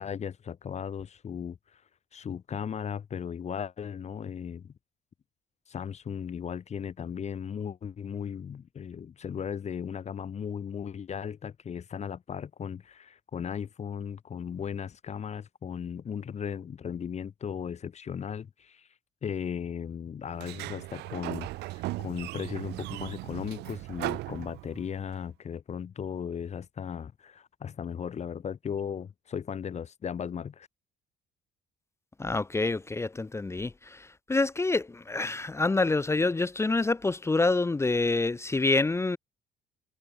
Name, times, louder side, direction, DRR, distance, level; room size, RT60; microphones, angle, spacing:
voice 1, 0.0-1.8 2.1-4.7 5.7-18.9 19.2-30.7, left 7 dB, 40° left, 2.9 m, -36 dB
Sliding door, 20.3-25.1, right 19 dB, 85° right, 2.0 m, -37 dB
voice 2, 32.2-39.2, left 3 dB, 15° left, 1.2 m, -27 dB
cardioid pair, 110°, 17 cm